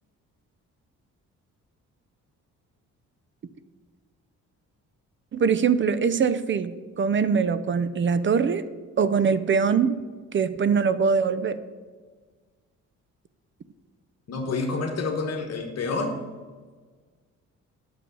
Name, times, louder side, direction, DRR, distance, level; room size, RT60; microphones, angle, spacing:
voice 1, 5.3-8.6 9.0-10.0 10.3-11.6, right 6 dB, 40° right, 14 dB, 0.6 m, -23 dB
voice 2, 14.3-16.2, left 3 dB, 55° left, 3 dB, 1.4 m, -28 dB
8.6 x 7.0 x 6.9 m, 1.5 s
cardioid pair, 90°, 30 cm